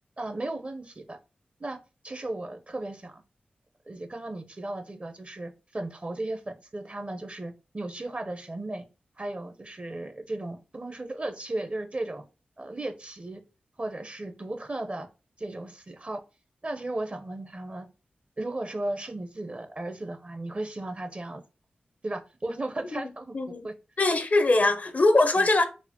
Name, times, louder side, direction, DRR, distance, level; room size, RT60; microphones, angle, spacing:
voice 1, 0.2-1.2 1.6-1.8 2.0-3.2 3.9-8.8 9.2-12.2 12.6-13.4 13.8-15.1 15.4-16.2 16.6-17.9 18.4-21.4 22.0-23.4 23.6-23.7 25.4-25.5, right 2 dB, 35° right, 0.7 m, -35 dB
voice 2, 23.3-23.7 24.0-25.6, left 2 dB, 45° left, 0.6 m, -22 dB
4.1 x 2.0 x 2.9 m
cardioid pair, 40°, 4 cm